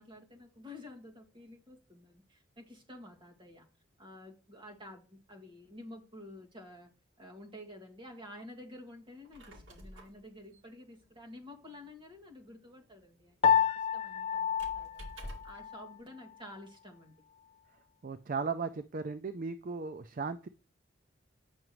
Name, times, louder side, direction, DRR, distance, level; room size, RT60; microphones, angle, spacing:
voice 1, 0.0-3.7 4.0-6.9 7.2-15.0 15.4-17.1, left 1 dB, 25° right, -1 dB, 1.9 m, -51 dB
Squeak, 9.1-15.7, equal, 65° right, 2.1 m, -52 dB
Piano, 13.4-16.0, left 7 dB, 30° left, 0.4 m, -29 dB
voice 2, 18.0-20.5, right 5 dB, 45° right, 10 dB, 0.4 m, -36 dB
9.0 x 6.0 x 3.1 m, 0.34 s
head